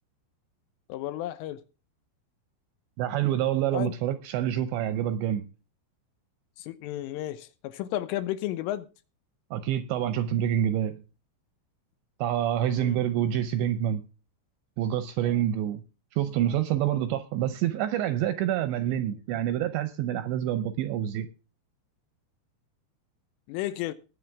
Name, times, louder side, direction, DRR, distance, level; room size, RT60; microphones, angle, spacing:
voice 1, 0.9-1.6 3.7-3.9 6.6-8.9 12.6-13.0 23.5-23.9, left 14 dB, 80° left, 3.3 m, -33 dB
voice 2, 3.0-5.4 9.5-11.0 12.2-14.0 14.8-15.8 16.1-21.3, right 11 dB, 80° right, 2.7 m, -27 dB
20.0 x 7.2 x 3.5 m
omnidirectional pair, 5.8 m